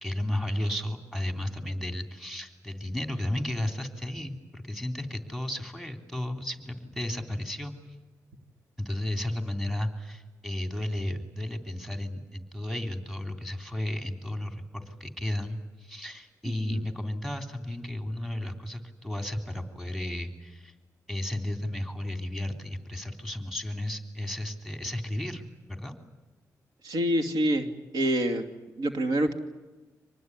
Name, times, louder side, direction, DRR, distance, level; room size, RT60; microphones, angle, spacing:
voice 1, 0.0-7.7 8.8-20.7 21.1-25.4 25.7-26.0, left 1 dB, 5° right, 6 dB, 3.3 m, -33 dB
voice 2, 16.4-16.8 26.8-27.7 27.9-28.4 28.8-29.3, right 1 dB, 80° right, 7 dB, 2.6 m, -26 dB
25.5 x 19.5 x 9.7 m, 1.2 s
cardioid pair, 90°, 6 cm